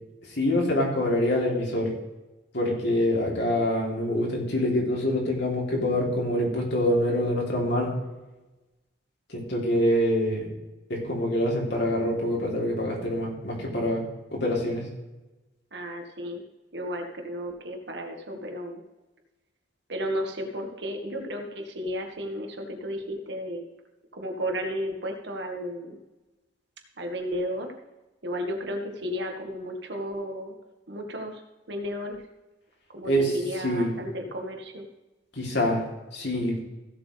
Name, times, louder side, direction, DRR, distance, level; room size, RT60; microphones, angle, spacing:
voice 1, 0.3-1.9 2.5-7.9 9.3-10.5 10.9-14.0 14.3-14.9 33.0-34.0 35.3-35.8 36.1-36.6, left 1 dB, 65° left, -2 dB, 3.3 m, -25 dB
voice 2, 15.7-16.4 16.7-18.8 19.9-23.6 24.1-26.0 27.0-27.7 28.2-30.6 30.9-31.4 31.7-32.2 32.9-34.8, equal, 65° right, 3 dB, 1.8 m, -33 dB
16.0 x 7.7 x 3.4 m, 1.1 s
head